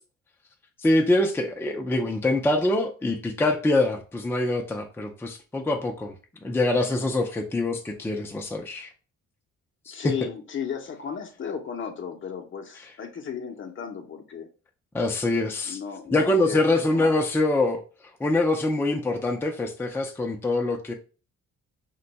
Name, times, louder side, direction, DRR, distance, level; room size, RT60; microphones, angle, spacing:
voice 1, 0.8-6.1 6.4-8.9 9.9-10.0 14.9-15.8 16.1-17.8 18.2-20.9, left 2 dB, 10° left, 0.4 m, -24 dB
voice 2, 9.9-14.5 15.6-17.2, left 7 dB, 40° left, 0.7 m, -34 dB
2.5 x 2.2 x 3.9 m
cardioid pair, 90°, 30 cm